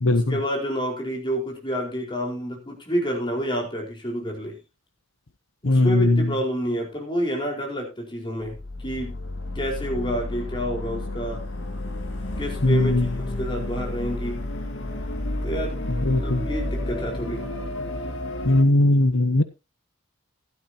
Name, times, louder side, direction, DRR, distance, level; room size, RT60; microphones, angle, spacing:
voice 1, 0.1-4.6 5.6-8.6 8.8-9.2 9.5-11.4 12.4-14.5 15.4-15.8 16.1-17.4, equal, 25° left, 0 dB, 4.7 m, -29 dB
voice 2, 5.6-6.2 12.6-13.1 16.0-16.4 18.4-19.4, left 2 dB, 85° left, 11 dB, 1.0 m, -19 dB
sound 1, 8.4-18.6, left 1 dB, 65° left, 2.3 m, -31 dB
15.5 x 12.0 x 2.9 m, 0.27 s
head